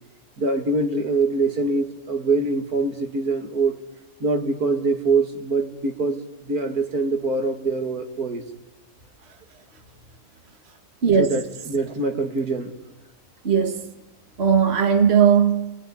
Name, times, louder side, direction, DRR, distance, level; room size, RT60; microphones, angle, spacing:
voice 1, 0.4-3.8 4.2-8.4 11.2-12.7, right 3 dB, 80° right, 2.8 m, -24 dB
voice 2, 11.0-11.3 13.4-13.9 14.4-15.8, right 7 dB, 45° right, 2.0 m, -18 dB
29.0 x 20.5 x 9.9 m
omnidirectional pair, 1.6 m